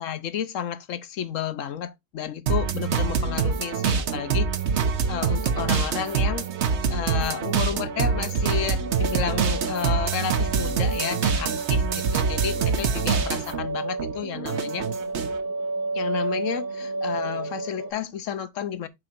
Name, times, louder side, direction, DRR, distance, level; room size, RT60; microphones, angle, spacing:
voice 1, 0.0-4.5 5.1-6.5 6.9-14.8 15.9-18.9, left 8 dB, 75° left, 1.1 m, -31 dB
sound 1, 2.5-13.7 14.0-15.4, right 6 dB, 60° right, 1.1 m, -25 dB
sound 2, 3.1-17.9, right 3 dB, 45° right, 2.0 m, -34 dB
7.8 x 3.7 x 4.4 m
omnidirectional pair, 1.4 m